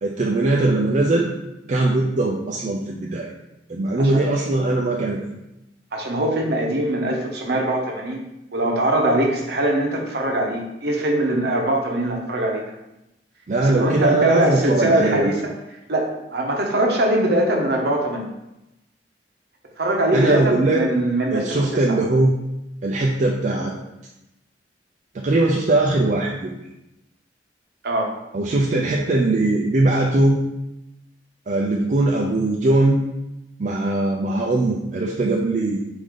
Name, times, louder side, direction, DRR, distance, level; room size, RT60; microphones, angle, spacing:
voice 1, 0.0-1.3 1.7-3.3 3.7-5.2 13.5-15.3 20.1-20.8 21.3-22.3 22.8-23.7 25.1-26.5 28.3-30.4 31.5-33.0 33.6-35.8, right 2 dB, 45° right, -2 dB, 0.4 m, -20 dB
voice 2, 5.9-12.6 13.6-15.4 15.9-18.3 19.8-22.0 27.8-28.1, right 1 dB, 65° right, 1 dB, 0.8 m, -22 dB
4.9 x 2.6 x 3.7 m, 0.91 s
head